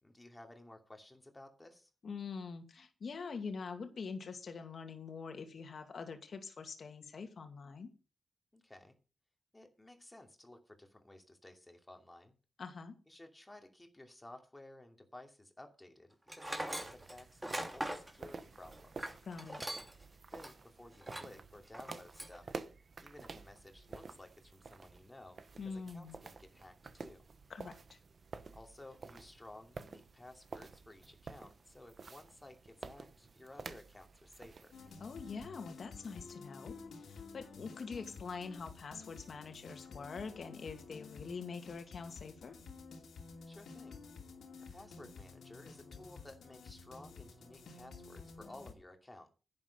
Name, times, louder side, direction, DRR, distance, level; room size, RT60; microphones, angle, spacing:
voice 1, 0.0-1.9 8.5-9.0 9.5-12.3 13.1-19.1 20.3-22.5 23.0-27.3 28.5-34.7 43.5-44.0 44.7-49.3, left 1 dB, 15° left, 4 dB, 2.7 m, -55 dB
voice 2, 2.0-7.9 12.6-13.0 19.3-19.6 25.6-26.2 27.5-28.0 35.0-42.6, left 5 dB, 60° left, 6 dB, 2.4 m, -45 dB
Tools, 16.3-20.0 20.4-20.5 21.0-21.4 21.7-22.4, right 1 dB, 15° right, 2.7 m, -41 dB
sound 1, 16.4-35.5, right 4 dB, 50° right, 1.0 m, -51 dB
sound 2, 34.7-48.7, left 4 dB, 80° left, 2.7 m, -52 dB
11.0 x 9.5 x 5.5 m, 0.34 s
cardioid pair, 80°, 0 cm